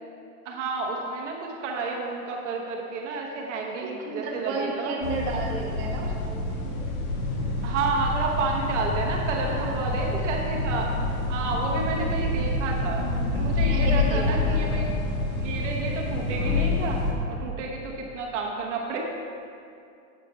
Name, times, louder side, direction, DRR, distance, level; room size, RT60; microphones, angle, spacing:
voice 1, 0.4-4.9 7.6-14.9 15.4-19.0, right 3 dB, 55° right, 0 dB, 1.2 m, -30 dB
voice 2, 3.8-6.4 9.5-10.0 13.7-14.8, right 3 dB, 30° right, -4 dB, 1.3 m, -33 dB
sound 1, 5.0-17.1, left 2 dB, 70° left, 1.9 m, -27 dB
8.4 x 8.3 x 4.6 m, 2.5 s
supercardioid pair, 175°, 43 cm